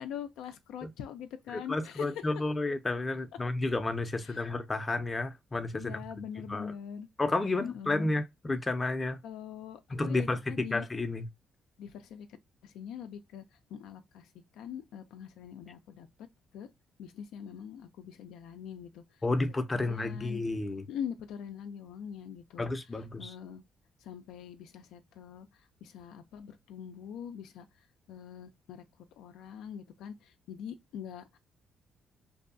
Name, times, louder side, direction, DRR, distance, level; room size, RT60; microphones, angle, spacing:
voice 1, 0.0-2.1 4.2-4.5 5.7-7.1 7.6-8.1 9.2-10.9 11.8-12.3 12.6-13.4 13.7-14.3 14.5-16.1 16.5-16.7 17.0-19.0 19.7-20.4 20.9-22.7 23.2-23.6 24.0-25.5 25.8-27.7 28.1-28.8 29.2-31.4, left 8 dB, 90° left, 0.4 m, -43 dB
voice 2, 1.5-5.9 6.5-6.7 7.2-9.2 9.9-11.3 19.2-20.9 22.6-23.3, left 2 dB, 25° left, 0.5 m, -31 dB
2.6 x 2.3 x 2.5 m
cardioid pair, 90°, 0 cm